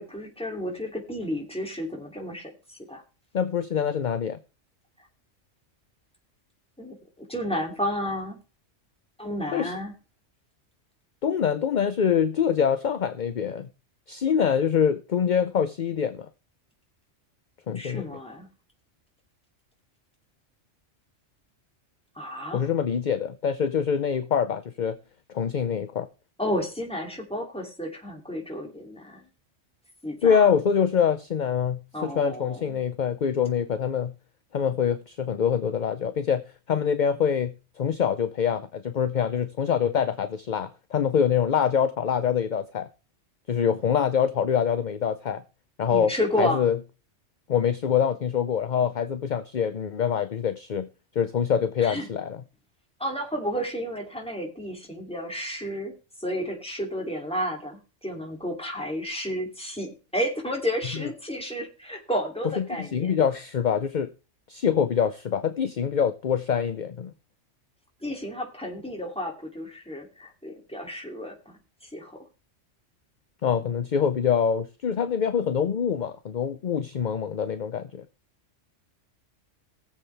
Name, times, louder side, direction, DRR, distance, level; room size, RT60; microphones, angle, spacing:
voice 1, 0.0-3.0 6.8-8.4 9.2-9.9 17.7-18.5 22.2-22.6 26.4-29.3 30.0-30.5 31.9-32.8 45.9-46.7 51.8-52.1 53.0-55.9 56.2-63.1 68.0-71.3 71.8-72.2, equal, 5° left, 2.7 m, -32 dB
voice 2, 3.3-4.4 9.5-9.7 11.2-13.7 14.1-16.3 17.7-18.1 22.5-25.0 25.3-26.1 30.2-34.1 34.5-36.4 36.7-42.9 43.5-45.4 45.8-46.1 46.4-46.8 47.5-50.9 51.1-52.4 62.6-64.1 64.5-67.1 73.4-78.0, left 7 dB, 45° left, 0.7 m, -25 dB
19.5 x 7.5 x 3.4 m
omnidirectional pair, 1.3 m